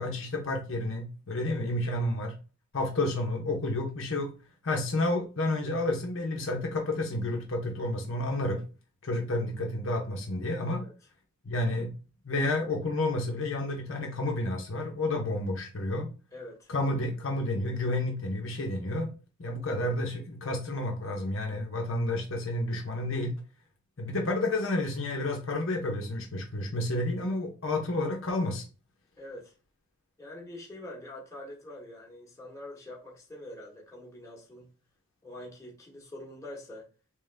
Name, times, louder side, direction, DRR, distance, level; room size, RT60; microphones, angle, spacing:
voice 1, 0.0-2.3 2.7-4.3 4.6-8.6 9.0-10.8 11.4-11.9 12.2-16.1 16.7-19.1 19.4-23.3 24.0-28.6, left 2 dB, 60° left, 0.8 m, -30 dB
voice 2, 16.3-16.7 29.2-29.5 30.2-34.7 35.2-36.9, left 1 dB, 15° left, 1.2 m, -45 dB
3.6 x 3.0 x 3.3 m
head